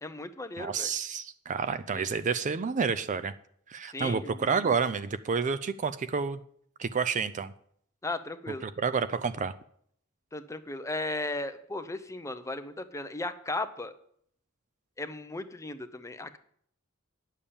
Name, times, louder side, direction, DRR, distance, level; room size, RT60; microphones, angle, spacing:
voice 1, 0.0-0.9 1.9-2.1 3.9-4.7 8.0-8.6 10.3-13.9 15.0-16.4, left 2 dB, 15° left, 9 dB, 0.7 m, -36 dB
voice 2, 0.6-3.3 3.7-6.4 6.8-7.5 8.6-9.5, right 5 dB, 35° right, 13 dB, 0.4 m, -29 dB
10.0 x 7.2 x 6.9 m, 0.65 s
head